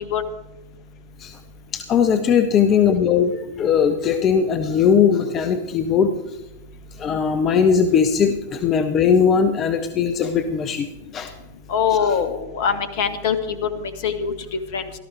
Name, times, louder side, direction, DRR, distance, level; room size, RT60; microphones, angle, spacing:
voice 1, 1.7-6.1 7.0-10.9 11.1-11.3 11.9-12.1, left 7 dB, 30° left, 8 dB, 0.9 m, -19 dB
voice 2, 11.7-13.4 13.8-14.3 14.7-14.8, left 7 dB, 50° left, 10 dB, 1.3 m, -22 dB
18.0 x 13.0 x 3.4 m, 0.94 s
figure-of-eight pair, 90°, 0 cm